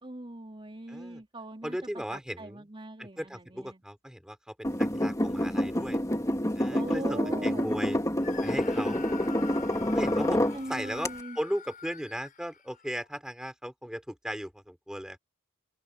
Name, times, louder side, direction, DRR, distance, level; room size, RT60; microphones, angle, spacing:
voice 1, 0.0-3.8 6.7-7.7 10.2-11.4, right 1 dB, 25° right, 3.2 m, -41 dB
voice 2, 0.9-1.2 1.6-2.6 3.0-6.0 6.5-8.0 8.4-9.1 9.9-10.4 10.7-15.2, equal, 5° right, 4.6 m, -37 dB
sound 1, 4.6-10.6 11.0-11.1, left 1 dB, 15° left, 2.9 m, -28 dB
Screaming, 8.2-13.1, left 7 dB, 40° left, 7.6 m, -46 dB
open air
head